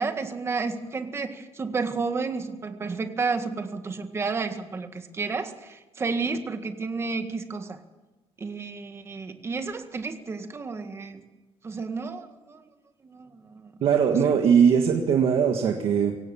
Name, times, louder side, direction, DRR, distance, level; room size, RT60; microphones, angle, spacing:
voice 1, 0.0-7.8 8.4-11.2 11.6-12.6 13.0-13.7 14.1-14.2, right 4 dB, 25° right, 7 dB, 1.8 m, -31 dB
voice 2, 13.8-16.1, right 7 dB, 60° right, 3 dB, 1.9 m, -20 dB
23.5 x 17.5 x 7.2 m, 1.1 s
cardioid pair, 160°, 11 cm